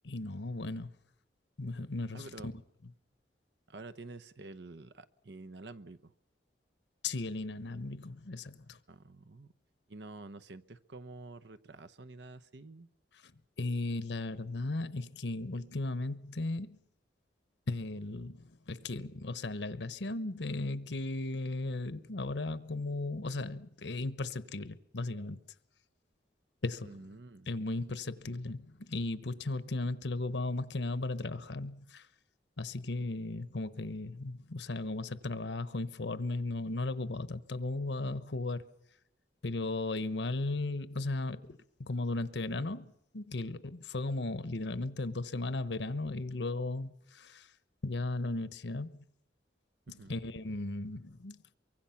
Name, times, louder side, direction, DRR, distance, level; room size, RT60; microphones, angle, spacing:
voice 1, 0.0-0.9 1.6-2.5 7.0-8.8 13.6-16.8 17.7-25.4 26.6-26.9 27.5-32.1 32.6-38.6 39.4-47.5 47.8-49.0 49.9-51.5, left 2 dB, 75° left, 1.1 m, -36 dB
voice 2, 2.1-2.5 3.7-6.1 8.9-9.5 9.9-12.9 26.8-27.5 49.9-50.2, right 2 dB, 70° right, 0.9 m, -49 dB
24.0 x 23.5 x 5.9 m
head